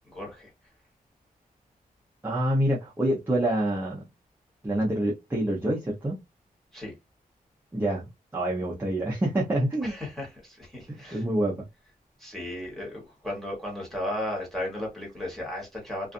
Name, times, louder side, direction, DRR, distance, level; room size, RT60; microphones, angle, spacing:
voice 1, 0.1-0.5 6.7-6.9 9.8-11.2 12.2-16.1, left 1 dB, ahead, 1.4 m, -35 dB
voice 2, 2.2-4.0 4.6-6.2 7.7-9.9 10.9-11.7, right 1 dB, 15° right, 0.6 m, -27 dB
2.5 x 2.4 x 2.5 m
wide cardioid pair, 165°, 15 cm